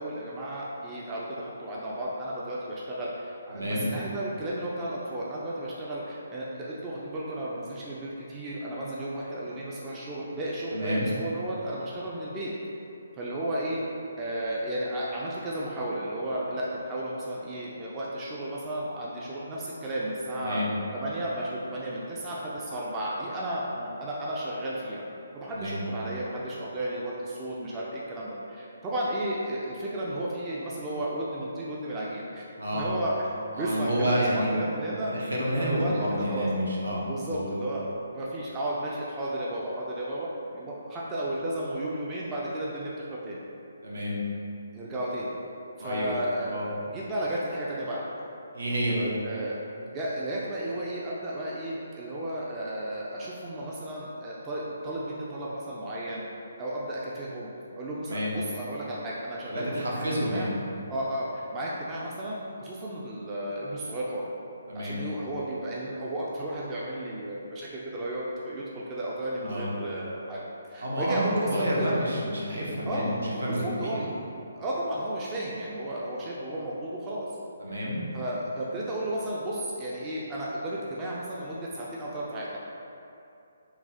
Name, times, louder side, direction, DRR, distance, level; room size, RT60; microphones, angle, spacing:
voice 1, 0.0-12.5 13.2-13.8 14.2-20.6 20.9-25.0 25.3-32.5 32.7-33.3 33.6-36.5 37.1-40.3 40.5-43.4 44.7-45.3 45.8-46.5 46.9-48.2 49.2-49.6 49.9-56.2 56.6-57.5 57.8-60.5 60.9-64.2 64.7-70.4 70.7-72.0 72.9-73.2 73.5-74.1 74.5-77.3 78.1-82.6, right 1 dB, 20° right, -6 dB, 0.3 m, -33 dB
voice 2, 3.5-3.9 10.7-11.1 20.4-20.7 25.5-25.8 32.6-32.9 33.5-34.6 35.1-37.5 43.8-44.2 45.8-46.1 46.5-46.7 48.5-49.1 58.1-58.3 59.5-60.5 64.7-65.0 69.4-69.7 70.8-74.0 77.6-78.0, equal, 70° right, -5 dB, 0.8 m, -29 dB
3.8 x 2.3 x 2.7 m, 2.7 s
figure-of-eight pair, 140°, 0 cm